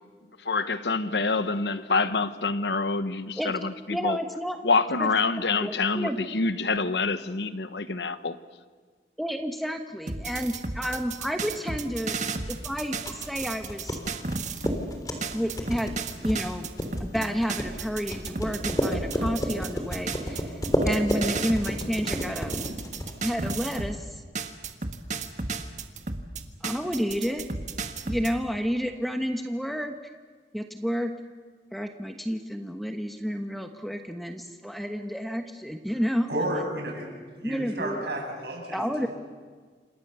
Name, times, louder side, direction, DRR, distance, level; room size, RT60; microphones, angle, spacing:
voice 1, 0.4-4.2 4.6-8.4, left 4 dB, 80° left, 12 dB, 1.2 m, -26 dB
voice 2, 3.4-4.6 4.9-5.1 5.6-6.2 9.2-14.0 15.3-16.7 17.0-22.6 23.2-24.2 26.6-27.5 28.0-30.0 30.5-31.1 31.7-36.3 37.4-38.0 38.7-39.1, equal, ahead, 6 dB, 1.2 m, -30 dB
sound 1, 10.1-14.8 15.2-24.0 24.3-28.3, right 4 dB, 45° right, 1.6 m, -33 dB
sound 2, 12.7-23.8, equal, 20° left, 3.4 m, -32 dB
voice 3, 36.3-37.1 37.4-39.1, right 1 dB, 70° right, 1 dB, 7.6 m, -32 dB
29.5 x 26.5 x 6.9 m, 1.5 s
head